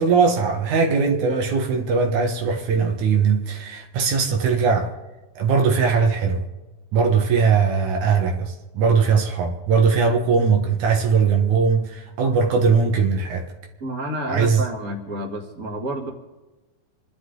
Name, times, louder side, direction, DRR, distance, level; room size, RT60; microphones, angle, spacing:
voice 1, 0.0-4.9 5.4-6.4 6.9-13.5 14.3-14.7, right 5 dB, 75° right, 2.9 m, -20 dB
voice 2, 13.8-16.1, right 1 dB, 30° right, 2.7 m, -29 dB
27.0 x 12.0 x 3.9 m
omnidirectional pair, 3.4 m